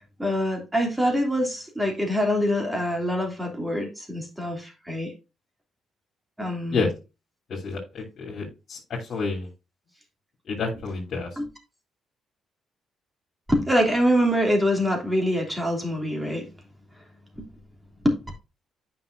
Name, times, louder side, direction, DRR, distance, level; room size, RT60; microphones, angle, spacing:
voice 1, 0.2-5.1 6.4-6.9 11.4-11.5 13.5-16.5 17.4-17.5 18.0-18.1, equal, 10° right, 2.9 m, -24 dB
voice 2, 7.5-9.5 10.5-11.3, left 4 dB, 60° left, 2.8 m, -29 dB
9.1 x 5.7 x 2.6 m
cardioid pair, 90°, 0 cm